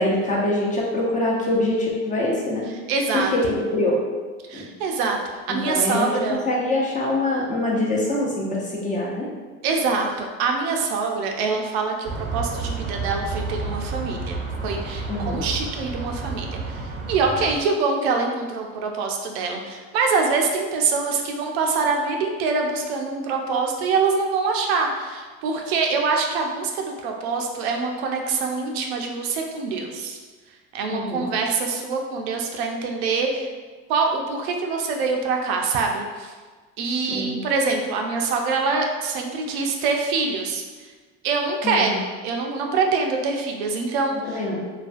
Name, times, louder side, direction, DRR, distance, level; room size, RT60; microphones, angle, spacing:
voice 1, 0.0-2.6 3.1-4.0 4.5-4.7 5.5-6.2 6.5-9.3 15.1-15.4 30.9-31.3 37.1-37.4 41.6-41.9 44.3-44.6, left 1 dB, 25° left, -3 dB, 0.6 m, -24 dB
voice 2, 2.9-3.3 4.5-6.4 9.6-14.4 14.6-16.8 17.1-30.2 30.7-33.5 33.9-36.3 36.8-40.6 41.2-44.4, right 4 dB, 90° right, 2 dB, 0.5 m, -24 dB
sound 1, 12.0-17.6, right 4 dB, 35° right, 0.6 m, -30 dB
2.4 x 2.2 x 2.4 m, 1.4 s
supercardioid pair, 90°, 31 cm